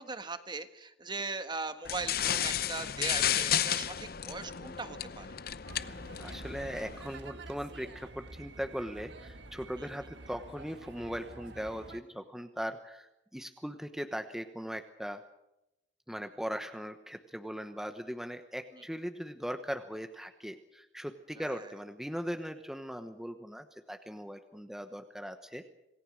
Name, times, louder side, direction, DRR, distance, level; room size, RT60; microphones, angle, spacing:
voice 1, 0.0-5.3 9.8-9.9 21.4-21.7, right 3 dB, 25° right, 9 dB, 1.4 m, -39 dB
sound 1, 1.8-7.1, left 10 dB, 55° left, 0.8 m, -33 dB
sound 2, 5.7-12.0, right 2 dB, 70° right, 1.7 m, -48 dB
voice 2, 5.9-15.2 16.1-25.6, equal, ahead, 7 dB, 1.0 m, -39 dB
27.0 x 18.5 x 6.4 m, 0.88 s
head